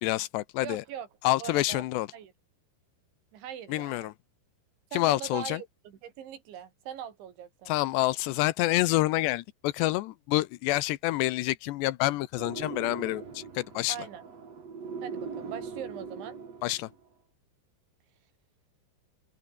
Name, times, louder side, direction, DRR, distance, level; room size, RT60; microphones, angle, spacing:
voice 1, 0.0-0.8 1.2-2.1 3.7-4.1 4.9-5.6 7.7-14.0 16.6-16.9, left 18 dB, 80° left, 2.9 m, -27 dB
voice 2, 0.6-1.1 1.4-1.9 2.1-2.3 3.3-4.1 4.9-7.7 13.9-14.3 15.0-16.4, right 9 dB, 85° right, 5.3 m, -41 dB
sound 1, 12.4-17.0, right 5 dB, 40° right, 4.3 m, -41 dB
open air
omnidirectional pair, 5.2 m